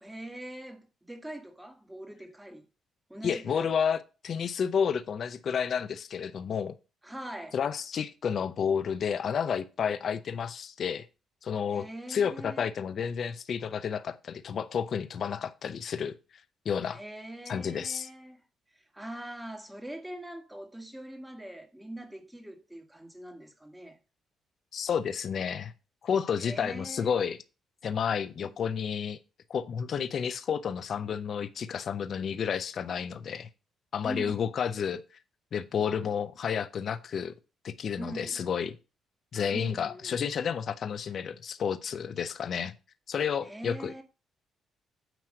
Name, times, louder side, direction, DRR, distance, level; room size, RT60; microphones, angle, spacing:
voice 1, 0.0-2.6 3.1-3.7 7.0-7.6 11.7-12.6 16.9-18.4 18.9-24.0 26.4-27.2 28.4-28.5 34.0-34.4 36.0-36.1 38.0-38.4 39.5-40.1 43.4-44.0, right 1 dB, 10° right, 1.6 m, -42 dB
voice 2, 3.2-6.7 7.5-11.1 11.4-16.2 16.6-17.0 17.5-18.1 24.7-25.7 26.0-27.4 27.8-29.2 29.5-33.5 33.9-35.0 35.5-37.3 37.6-38.8 39.3-42.7 43.1-43.9, left 7 dB, 55° left, 0.7 m, -31 dB
9.2 x 3.1 x 6.3 m
cardioid pair, 90°, 0 cm